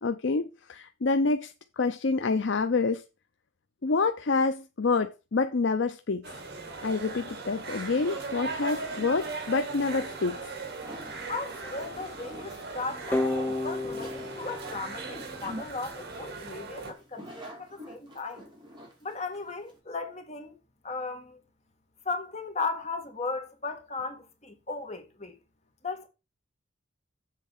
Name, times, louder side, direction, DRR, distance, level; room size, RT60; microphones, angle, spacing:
voice 1, 0.0-3.0 3.8-6.3 6.8-10.5, left 4 dB, 60° left, 0.5 m, -27 dB
sound 1, 6.2-16.9, right 3 dB, 50° right, 2.0 m, -39 dB
sound 2, 7.7-19.8, equal, 20° right, 2.8 m, -47 dB
voice 2, 11.3-18.4 19.0-20.5 20.8-21.4 22.0-25.3 25.8-26.1, left 3 dB, 35° left, 1.7 m, -36 dB
sound 3, 13.1-15.9, left 2 dB, 10° left, 0.5 m, -32 dB
7.5 x 4.1 x 6.6 m
head